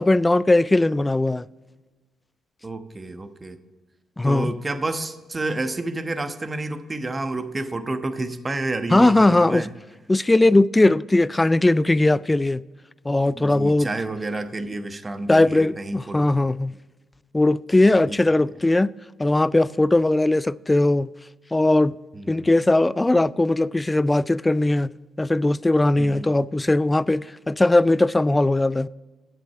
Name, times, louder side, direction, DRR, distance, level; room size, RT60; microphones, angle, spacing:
voice 1, 0.0-1.4 4.2-4.5 8.9-9.6 10.1-12.6 13.1-13.9 15.3-16.7 17.3-18.9 19.2-21.1 21.5-21.9 22.3-24.9 25.2-28.9, left 2 dB, 20° left, 0.3 m, -19 dB
voice 2, 2.6-3.6 4.2-9.7 13.4-16.2 18.1-18.2 22.1-22.5 26.0-26.3, right 2 dB, 30° right, 1.1 m, -30 dB
10.5 x 7.8 x 4.7 m
hypercardioid pair, 50°, 0 cm